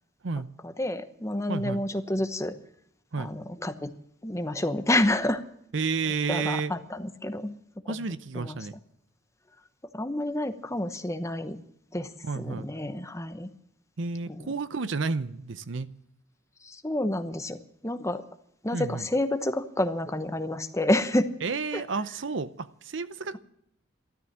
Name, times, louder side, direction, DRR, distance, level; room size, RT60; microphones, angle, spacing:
voice 1, 0.6-2.5 3.2-3.9 4.2-5.4 6.3-7.5 7.9-8.0 8.3-8.6 9.9-11.6 11.9-13.5 14.3-14.5 16.6-17.6 17.8-18.2 18.6-21.3 21.7-21.8, left 1 dB, 15° left, 9 dB, 1.0 m, -29 dB
voice 2, 1.5-1.8 3.1-3.3 5.7-6.7 7.9-8.7 12.2-12.7 14.0-15.9 18.7-19.0 21.4-23.4, right 4 dB, 65° right, 14 dB, 0.7 m, -31 dB
13.0 x 13.0 x 7.4 m, 0.72 s
head